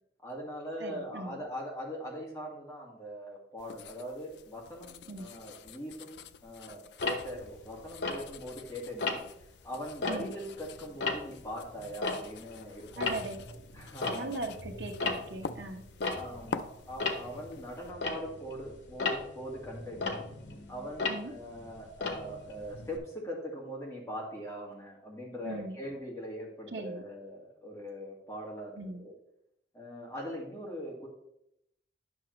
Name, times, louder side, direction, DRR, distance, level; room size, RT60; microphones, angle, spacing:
voice 1, 0.2-9.2 9.6-13.0 13.7-14.4 16.2-20.3 20.7-29.2 29.7-31.1, equal, 15° left, -3 dB, 1.9 m, -41 dB
voice 2, 0.8-1.4 5.1-5.3 10.1-10.3 13.0-13.4 14.1-15.8 21.1-21.3 25.4-25.8 26.7-27.0 28.8-29.0, right 2 dB, 85° right, 5 dB, 1.0 m, -39 dB
sound 1, 3.6-17.9, left 5 dB, 65° left, 0.4 m, -47 dB
Tick-tock, 7.0-8.6 9.0-9.4 9.9-12.6 12.9-23.0, left 3 dB, 85° left, 1.0 m, -36 dB
10.0 x 6.0 x 3.1 m, 0.79 s
head